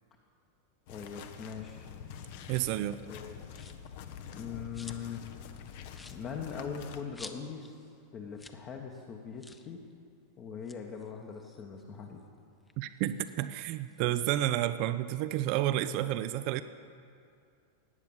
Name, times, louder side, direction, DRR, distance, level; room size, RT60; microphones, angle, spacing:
sound 1, 0.9-7.0, left 8 dB, 50° left, 0.9 m, -46 dB
voice 1, 0.9-1.9 3.1-3.5 4.3-5.2 6.1-7.8 8.1-9.8 10.4-12.2, left 6 dB, 30° left, 1 dB, 1.2 m, -41 dB
voice 2, 2.5-3.0 12.8-16.6, right 13 dB, 45° right, 13 dB, 0.4 m, -30 dB
sound 2, 3.5-3.9 4.4-5.2 5.5-5.6 5.9-7.8 8.0-8.1 8.3-8.7 8.9-9.0 9.4-9.7 10.5-12.2 12.6-14.1, left 3 dB, 10° left, 0.8 m, -52 dB
17.5 x 9.5 x 5.6 m, 2.4 s
figure-of-eight pair, 90°, 0 cm